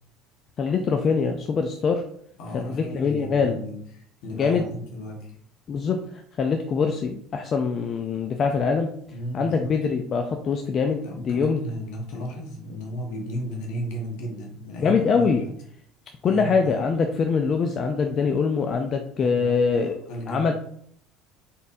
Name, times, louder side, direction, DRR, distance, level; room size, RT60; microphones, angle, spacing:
voice 1, 0.6-2.0 2.5-3.6 4.4-4.6 5.7-9.0 9.3-11.6 14.8-15.4 16.2-19.9 20.3-20.5, left 5 dB, 45° left, 4 dB, 0.4 m, -23 dB
voice 2, 2.4-5.4 9.1-9.7 11.0-15.5 16.2-16.8 19.2-20.5, equal, 70° left, -1 dB, 1.3 m, -34 dB
4.2 x 3.5 x 2.6 m, 0.65 s
hypercardioid pair, 80°, 0 cm